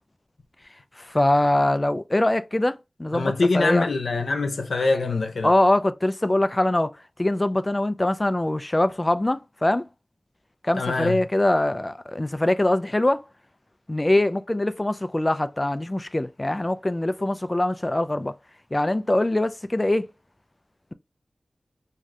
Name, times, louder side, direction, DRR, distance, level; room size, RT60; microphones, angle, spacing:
voice 1, 1.0-3.9 5.4-6.9 7.2-9.9 10.6-13.2 13.9-18.3 18.7-20.1, left 1 dB, 25° left, 0.3 m, -23 dB
voice 2, 3.1-5.5 10.8-11.2, left 3 dB, 80° left, 0.5 m, -24 dB
2.6 x 2.4 x 3.1 m
wide cardioid pair, 55°, 0 cm